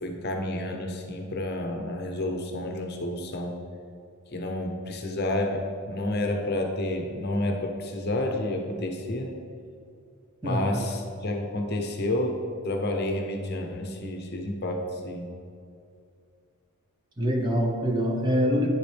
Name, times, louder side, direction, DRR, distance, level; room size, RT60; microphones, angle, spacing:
voice 1, 0.0-3.6 4.3-9.4 10.4-15.3, left 1 dB, 45° left, 3 dB, 0.8 m, -30 dB
voice 2, 10.4-10.8 17.2-18.7, equal, 20° right, 1 dB, 0.8 m, -25 dB
9.6 x 7.3 x 3.4 m, 2.4 s
head